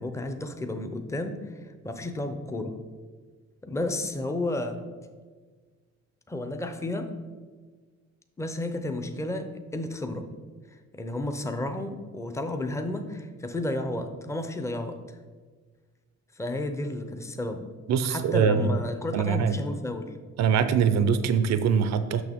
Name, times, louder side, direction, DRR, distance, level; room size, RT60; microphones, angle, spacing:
voice 1, 0.0-2.8 3.6-4.8 6.3-7.1 8.4-10.3 10.9-15.0 16.4-17.7 18.1-20.1, left 1 dB, 10° left, 7 dB, 0.6 m, -32 dB
voice 2, 17.9-18.7 19.1-19.5 20.4-22.2, right 7 dB, 60° right, 11 dB, 0.5 m, -23 dB
6.2 x 6.1 x 3.5 m, 1.5 s
cardioid pair, 90°, 30 cm